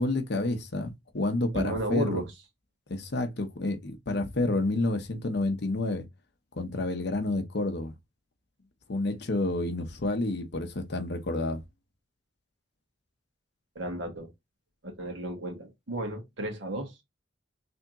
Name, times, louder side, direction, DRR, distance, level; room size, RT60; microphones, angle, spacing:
voice 1, 0.0-2.2 2.9-6.1 6.5-7.9 8.9-11.6, left 2 dB, 60° left, 0.8 m, -29 dB
voice 2, 1.5-2.3 13.8-14.3 14.8-17.0, right 1 dB, 75° right, 1.9 m, -33 dB
3.5 x 3.5 x 2.9 m
head